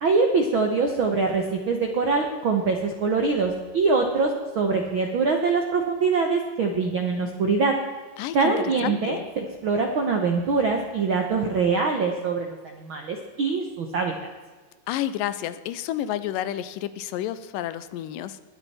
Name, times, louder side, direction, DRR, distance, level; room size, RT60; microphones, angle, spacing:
voice 1, 0.0-7.7 8.3-14.3, right 4 dB, 75° right, 3 dB, 1.1 m, -24 dB
voice 2, 8.2-8.5 8.8-9.3 14.9-18.4, left 12 dB, 85° left, 14 dB, 2.3 m, -30 dB
22.0 x 8.2 x 4.3 m, 1.4 s
omnidirectional pair, 3.9 m